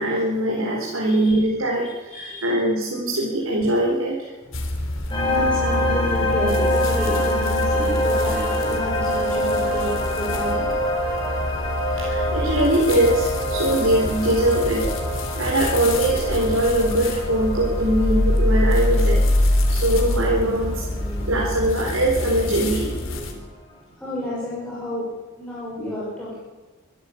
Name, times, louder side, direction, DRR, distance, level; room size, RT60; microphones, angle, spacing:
voice 1, 0.0-4.3 11.9-14.9 15.3-20.8 21.3-22.9, right 1 dB, 85° right, -3 dB, 4.3 m, -22 dB
voice 2, 1.0-1.4 2.1-2.6 4.4-10.7 19.5-23.4 23.7-25.0 25.3-26.3, equal, 5° left, -8 dB, 6.5 m, -32 dB
sound 1, 4.5-23.3, left 1 dB, 70° left, 3.6 m, -25 dB
sound 2, 5.1-22.1, left 1 dB, 20° left, 7.5 m, -26 dB
26.0 x 12.5 x 8.7 m, 1.2 s
head